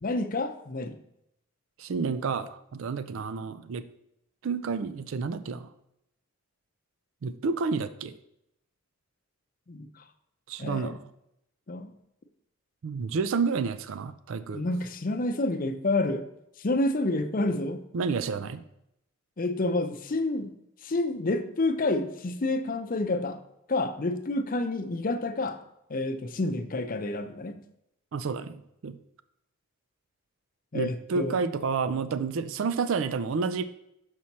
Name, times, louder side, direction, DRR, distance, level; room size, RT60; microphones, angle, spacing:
voice 1, 0.0-0.9 9.7-9.9 10.6-10.9 11.7-11.9 14.5-16.3 16.6-17.8 19.4-20.5 20.8-23.4 23.7-25.6 25.9-27.6 30.7-31.4, left 2 dB, 40° left, 7 dB, 0.6 m, -29 dB
voice 2, 1.8-3.8 4.4-5.7 7.2-8.2 10.5-11.0 12.8-14.7 17.9-18.6 28.1-29.0 30.7-33.6, right 5 dB, 60° right, 13 dB, 0.4 m, -30 dB
6.2 x 5.8 x 4.1 m, 0.81 s
head